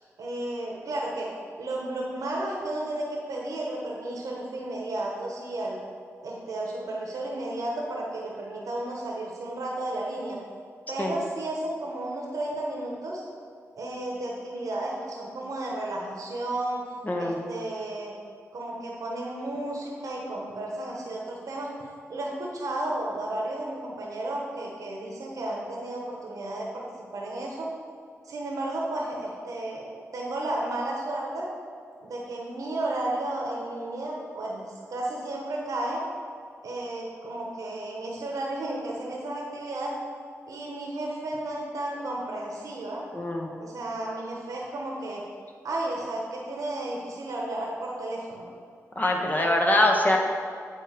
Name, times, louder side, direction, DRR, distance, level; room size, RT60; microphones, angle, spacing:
voice 1, 0.2-1.3 1.6-5.8 6.2-10.4 10.9-13.2 13.8-16.8 17.2-18.1 18.5-21.7 22.1-26.8 27.1-27.7 28.2-29.9 30.1-31.4 32.0-36.0 36.6-39.9 40.5-43.0 43.6-45.2 45.6-48.5, right 1 dB, 80° right, -2 dB, 1.1 m, -33 dB
voice 2, 17.0-17.4 43.1-43.5 49.0-50.2, left 1 dB, 30° left, 1 dB, 1.0 m, -23 dB
8.5 x 3.6 x 5.1 m, 2.2 s
cardioid pair, 60°, 6 cm